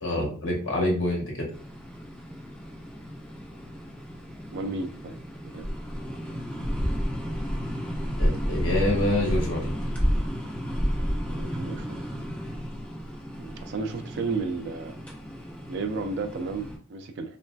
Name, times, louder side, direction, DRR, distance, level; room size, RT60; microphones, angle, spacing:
voice 1, 0.0-1.5 8.2-9.8, left 1 dB, 65° left, 1.1 m, -26 dB
sound 1, 1.5-16.8, equal, 5° left, 0.6 m, -31 dB
voice 2, 4.5-5.2 5.5-5.7 11.3-12.0 13.4-15.0 15.7-17.4, right 4 dB, 55° right, 0.3 m, -33 dB
3.1 x 2.5 x 2.2 m
head